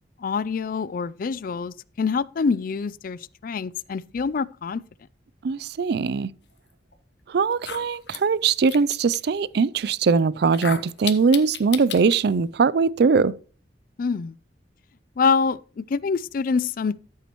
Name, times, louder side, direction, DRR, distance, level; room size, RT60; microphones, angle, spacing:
voice 1, 0.2-4.8 14.0-14.4 15.2-17.0, left 5 dB, 50° left, 0.4 m, -26 dB
voice 2, 5.4-6.3 7.3-13.3, right 5 dB, 65° right, 0.4 m, -21 dB
sound 1, 6.9-7.0 7.5-9.2 10.4-12.2, left 8 dB, 70° left, 1.2 m, -34 dB
13.5 x 8.4 x 3.0 m
head